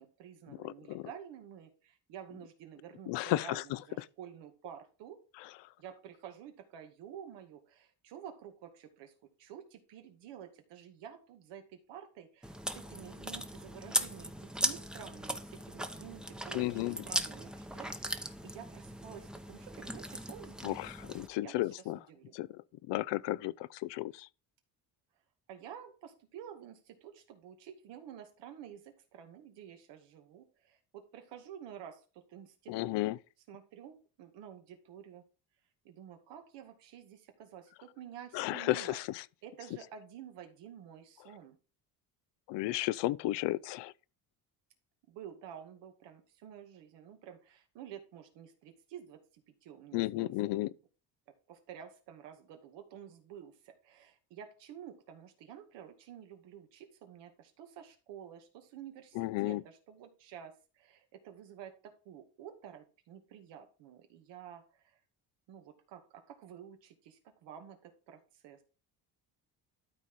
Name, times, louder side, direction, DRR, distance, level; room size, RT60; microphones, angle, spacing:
voice 1, 0.0-5.2 5.8-9.1 9.4-20.8 21.4-21.7 22.0-22.4 25.5-32.9 33.5-35.2 35.8-39.0 39.4-41.6 45.1-50.5 51.5-65.0 65.5-68.6, right 9 dB, 90° right, 2.2 m, -50 dB
voice 2, 0.6-1.1 3.1-3.8 16.5-17.0 20.6-22.0 22.3-22.6 22.9-24.3 32.7-33.2 38.3-39.2 42.5-43.9 49.9-50.7 59.2-59.6, left 17 dB, 85° left, 0.6 m, -33 dB
Chewing mastication, 12.4-21.3, equal, ahead, 0.8 m, -38 dB
12.5 x 4.2 x 4.8 m
cardioid pair, 125°, 42 cm